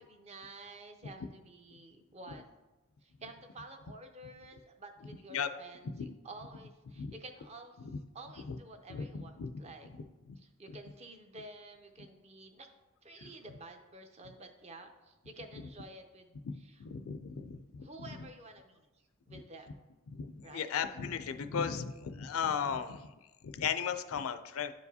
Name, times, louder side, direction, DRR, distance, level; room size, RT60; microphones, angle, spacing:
voice 1, 0.0-2.4 3.0-7.8 8.1-9.9 10.4-12.7 13.0-16.8 17.8-19.7 20.4-20.7, right 2 dB, 30° right, 5 dB, 0.6 m, -51 dB
voice 2, 8.9-9.5 10.0-10.4 16.4-18.3 19.3-19.4 20.1-23.1 23.4-24.7, left 7 dB, 75° left, 10 dB, 0.4 m, -36 dB
10.5 x 4.7 x 2.7 m, 1.1 s
head